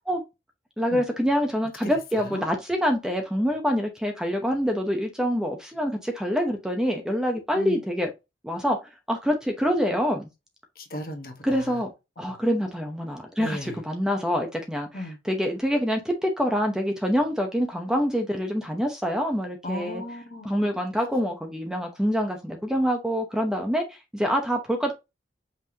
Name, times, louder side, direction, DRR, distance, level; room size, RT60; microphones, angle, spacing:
voice 1, 0.8-8.1 8.4-8.8 9.1-10.3 11.4-11.9 12.2-20.0 20.4-24.9, equal, 5° right, 0.8 m, -26 dB
voice 2, 1.8-2.4 7.5-7.8 10.8-11.8 12.2-12.4 13.4-13.8 14.9-15.2 19.6-20.5, equal, 50° left, 1.2 m, -36 dB
5.6 x 3.4 x 2.8 m
head